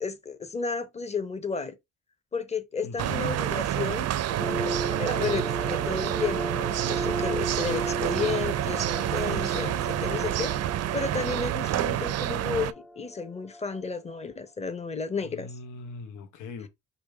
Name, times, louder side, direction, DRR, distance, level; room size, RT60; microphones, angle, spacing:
voice 1, 0.0-1.7 2.3-10.5 10.9-15.5, left 5 dB, 20° left, 0.9 m, -33 dB
voice 2, 2.8-3.3 4.4-4.7 7.7-7.8 9.2-9.8 15.2-16.7, left 5 dB, 80° left, 0.9 m, -40 dB
sound 1, 3.0-12.7, right 12 dB, 55° right, 0.5 m, -28 dB
sound 2, 4.4-14.2, right 1 dB, 5° left, 0.4 m, -36 dB
5.1 x 2.2 x 4.6 m
cardioid pair, 90°, 30 cm